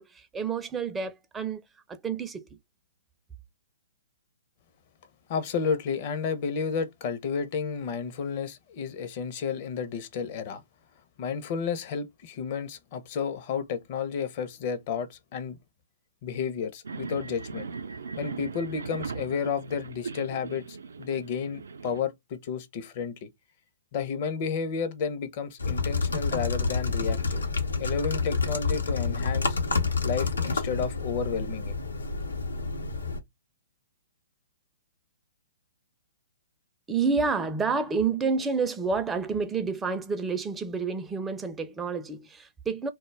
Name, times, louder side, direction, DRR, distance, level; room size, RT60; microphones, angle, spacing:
voice 1, 0.0-1.6 1.9-2.6 36.9-42.9, right 5 dB, 15° right, 0.4 m, -29 dB
voice 2, 5.3-10.6 11.2-15.6 16.2-17.7 18.2-23.3 23.9-27.4 27.8-29.6 30.0-31.7, left 6 dB, 45° left, 0.6 m, -31 dB
sound 1, 16.8-22.0, right 5 dB, 75° right, 0.4 m, -39 dB
sound 2, 25.6-33.2, left 4 dB, 85° left, 0.7 m, -28 dB
2.2 x 2.1 x 3.2 m
hypercardioid pair, 125°, 0 cm